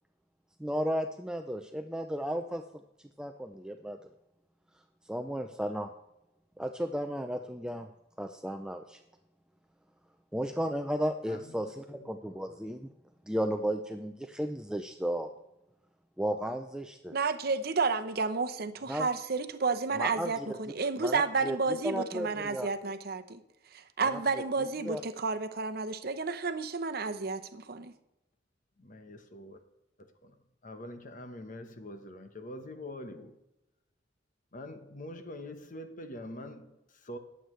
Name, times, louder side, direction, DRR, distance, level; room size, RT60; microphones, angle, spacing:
voice 1, 0.6-2.6 3.2-4.0 5.1-5.9 6.6-7.9 8.2-9.0 10.3-12.9 13.3-15.3 16.2-17.1 18.9-19.1 20.0-20.3 21.0-21.6 21.8-22.7 24.8-25.0, equal, 5° right, 0.4 m, -34 dB
voice 2, 11.2-12.4 28.8-29.6 30.0-30.4 30.6-33.4 34.5-37.2, left 1 dB, 45° left, 1.1 m, -45 dB
voice 3, 17.1-27.9, right 4 dB, 60° right, 0.8 m, -31 dB
20.5 x 8.0 x 3.2 m
head